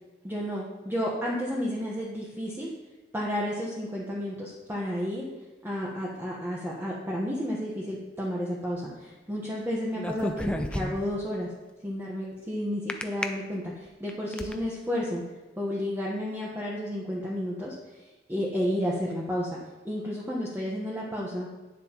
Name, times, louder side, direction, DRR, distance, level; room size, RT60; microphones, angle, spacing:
voice 1, 0.2-2.7 3.1-5.3 5.6-11.5 11.8-15.2 15.6-19.6 19.8-21.5, equal, 15° right, -5 dB, 1.2 m, -32 dB
sound 1, 9.9-11.2 12.9-13.2 13.9-14.5, left 1 dB, 5° left, 0.5 m, -31 dB
10.5 x 9.2 x 3.0 m, 1.2 s
head